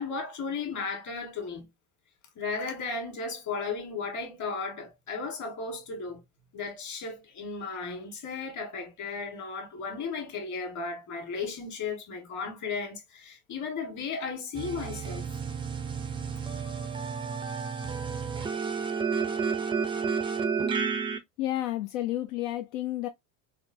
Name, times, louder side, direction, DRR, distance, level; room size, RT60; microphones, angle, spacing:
voice 1, 0.0-1.7 2.3-6.2 6.5-15.3, left 4 dB, 45° left, 1.7 m, -35 dB
sound 1, 14.5-21.2, right 6 dB, 15° right, 0.3 m, -31 dB
voice 2, 21.4-23.1, left 14 dB, 85° left, 0.6 m, -31 dB
4.2 x 2.1 x 2.6 m
supercardioid pair, 120°, 39 cm